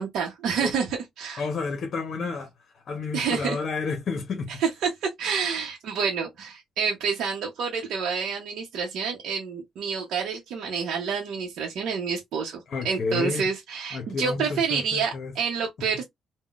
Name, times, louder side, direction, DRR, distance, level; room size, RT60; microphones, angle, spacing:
voice 1, 0.0-1.4 3.1-3.6 4.5-12.6 12.8-16.0, right 6 dB, 80° right, 0.7 m, -28 dB
voice 2, 1.4-2.5 2.9-4.5 12.7-13.5 13.9-15.3, left 4 dB, 55° left, 0.7 m, -30 dB
3.6 x 2.1 x 2.4 m
cardioid pair, 90°, 0 cm